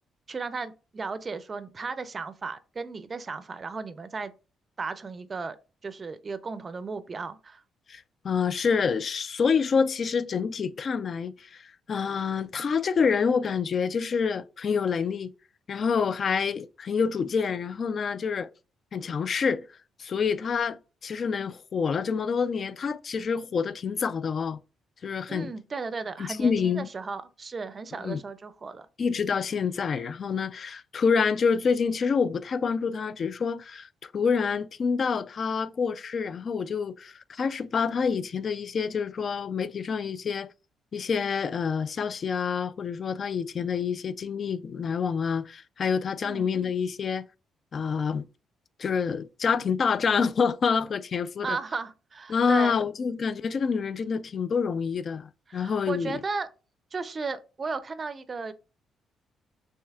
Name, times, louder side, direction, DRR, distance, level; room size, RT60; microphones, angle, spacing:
voice 1, 0.3-4.3 4.8-5.6 5.8-7.6 25.3-28.9 46.2-46.5 51.4-52.8 55.5-56.5 56.9-58.5, right 4 dB, 35° right, 0.4 m, -35 dB
voice 2, 7.9-15.3 15.7-18.5 18.9-19.6 20.0-24.6 25.0-25.5 26.2-26.9 28.0-28.2 29.0-33.9 34.1-40.5 40.9-47.3 47.7-48.2 48.8-51.6 52.3-56.2, left 6 dB, 50° left, 0.3 m, -27 dB
6.4 x 2.7 x 2.3 m
cardioid pair, 90°, 0 cm